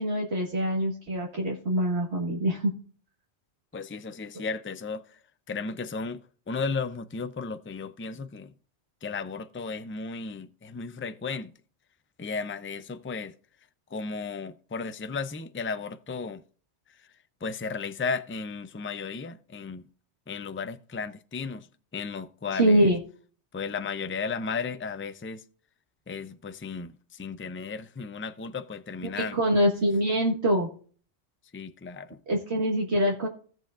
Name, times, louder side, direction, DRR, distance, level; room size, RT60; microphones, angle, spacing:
voice 1, 0.0-2.6 22.5-23.0 29.1-30.7 32.3-33.3, equal, 70° right, 1.9 m, -24 dB
voice 2, 3.7-5.0 5.5-8.5 9.0-11.5 12.2-13.3 13.9-16.4 17.4-19.9 20.3-21.7 21.9-22.9 23.5-25.4 26.1-29.4 31.5-32.2, left 4 dB, 20° left, 0.4 m, -34 dB
17.0 x 7.6 x 2.5 m
omnidirectional pair, 1.2 m